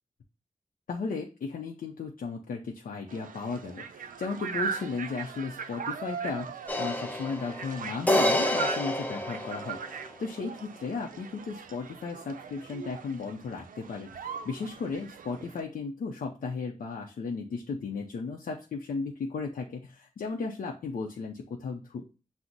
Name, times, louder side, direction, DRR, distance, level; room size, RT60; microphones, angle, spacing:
voice 1, 0.9-22.1, left 4 dB, 85° left, 0 dB, 0.5 m, -35 dB
sound 1, 3.1-15.6, right 5 dB, 85° right, 0.4 m, -40 dB
sound 2, 6.7-10.1, left 1 dB, 10° left, 0.6 m, -28 dB
5.9 x 2.0 x 3.9 m, 0.34 s
wide cardioid pair, 105°, 14 cm